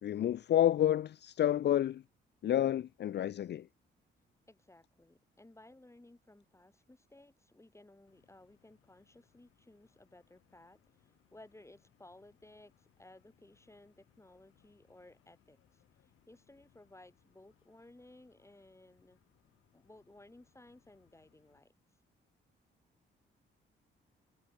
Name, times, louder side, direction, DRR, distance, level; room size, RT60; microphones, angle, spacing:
voice 1, 0.0-2.0 2.4-3.7, left 11 dB, 55° left, 0.5 m, -29 dB
voice 2, 4.5-19.2 19.7-21.7, left 2 dB, 15° left, 5.2 m, -59 dB
inside a car driving on german highway, 8.1-21.6, left 12 dB, 85° left, 7.9 m, -72 dB
cardioid pair, 70°, 21 cm